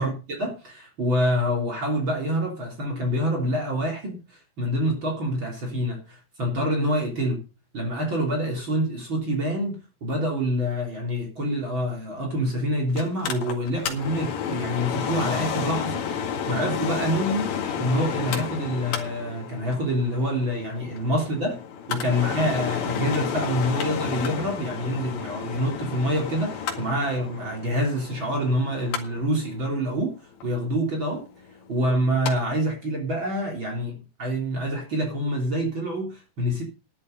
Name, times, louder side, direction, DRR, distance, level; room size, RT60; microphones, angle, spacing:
voice 1, 0.0-7.4 7.7-21.6 21.9-30.1 30.4-31.3 31.7-36.6, equal, 35° right, 3.9 m, -26 dB
Mechanical fan, 13.0-32.3 32.7-32.8, left 7 dB, 70° left, 3.7 m, -32 dB
12.0 x 10.5 x 5.3 m
omnidirectional pair, 4.2 m